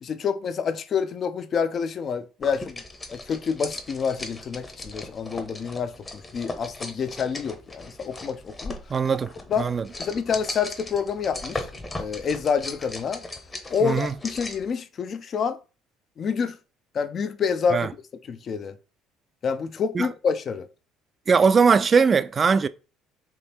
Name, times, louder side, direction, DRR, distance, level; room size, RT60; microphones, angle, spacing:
voice 1, 0.0-2.8 3.1-5.9 6.3-8.8 9.5-9.7 10.0-11.7 12.0-13.2 13.7-15.6 16.2-16.6 16.9-17.9 18.3-18.7 19.4-20.7, left 6 dB, 45° left, 0.5 m, -27 dB
sound 1, 2.4-14.7, left 2 dB, 25° left, 0.9 m, -38 dB
voice 2, 8.9-9.3 9.6-9.8 13.8-14.1 17.7-17.9 19.9-20.1 21.3-22.7, right 5 dB, 35° right, 0.4 m, -20 dB
3.6 x 2.8 x 4.1 m
supercardioid pair, 80°, 0 cm